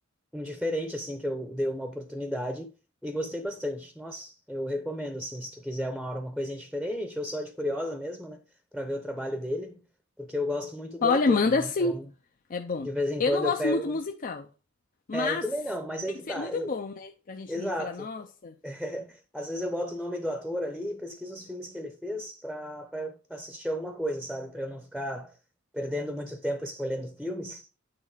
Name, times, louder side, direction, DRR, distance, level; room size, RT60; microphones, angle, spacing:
voice 1, 0.3-2.7 3.0-8.4 8.7-9.8 10.2-12.1 12.8-14.0 15.1-16.8 17.5-18.1 18.6-25.3 25.7-27.7, equal, ahead, 0.7 m, -33 dB
voice 2, 11.0-11.9 12.5-12.9 13.2-14.5 15.1-15.4 16.3-18.5, left 4 dB, 40° left, 0.5 m, -28 dB
8.9 x 4.0 x 4.9 m
head